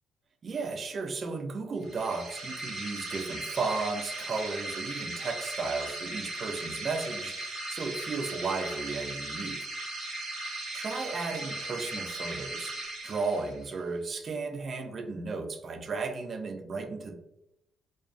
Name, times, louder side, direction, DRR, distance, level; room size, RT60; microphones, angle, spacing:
voice 1, 0.4-9.7 10.7-17.1, right 4 dB, 45° right, 6 dB, 0.4 m, -34 dB
sound 1, 1.8-13.7, right 2 dB, 75° right, 0.8 m, -38 dB
2.4 x 2.2 x 2.4 m, 0.84 s
cardioid pair, 90°, 0 cm